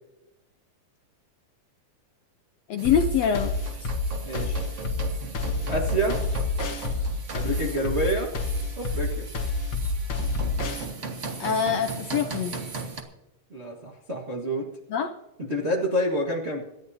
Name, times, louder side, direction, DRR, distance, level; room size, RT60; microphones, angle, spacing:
voice 1, 2.7-3.5 3.8-3.9 11.4-12.6 14.9-15.1, left 7 dB, 75° left, 5 dB, 1.6 m, -24 dB
sound 1, 2.8-10.8, left 3 dB, 55° left, 1.7 m, -28 dB
sound 2, 2.8-13.0, right 4 dB, 75° right, 0.6 m, -38 dB
voice 2, 4.2-4.6 5.7-6.2 7.3-8.3 8.8-9.3 13.5-14.7 15.4-16.6, right 1 dB, 40° right, -1 dB, 1.0 m, -28 dB
26.0 x 11.5 x 2.8 m, 0.97 s
omnidirectional pair, 3.8 m